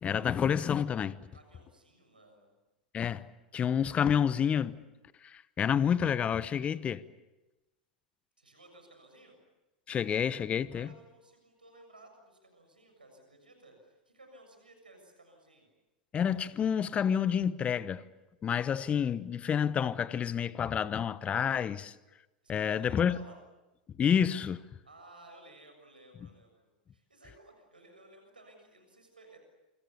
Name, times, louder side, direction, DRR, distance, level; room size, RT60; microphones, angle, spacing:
voice 1, 0.0-1.2 2.9-3.3 3.5-4.8 5.2-7.0 9.9-10.9 16.1-18.0 18.4-21.9 22.5-23.2 24.0-24.6, left 8 dB, 25° left, 1.0 m, -29 dB
voice 2, 1.3-2.5 8.4-9.4 10.7-15.7 22.4-23.4 24.8-29.4, right 2 dB, 90° right, 7.0 m, -57 dB
28.5 x 26.0 x 6.9 m
figure-of-eight pair, 95°, 5 cm